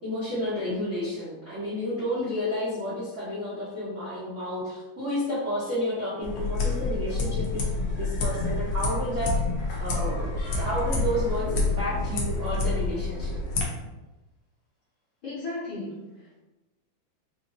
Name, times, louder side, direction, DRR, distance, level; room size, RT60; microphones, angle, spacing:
voice 1, 0.0-7.6 8.0-9.3 9.8-13.4, left 1 dB, 85° right, -12 dB, 0.6 m, -31 dB
sound 1, 6.2-13.6, left 3 dB, 90° left, 1.1 m, -28 dB
voice 2, 15.2-16.4, left 2 dB, 65° left, -8 dB, 1.3 m, -36 dB
4.5 x 2.8 x 2.7 m, 1.1 s
omnidirectional pair, 3.4 m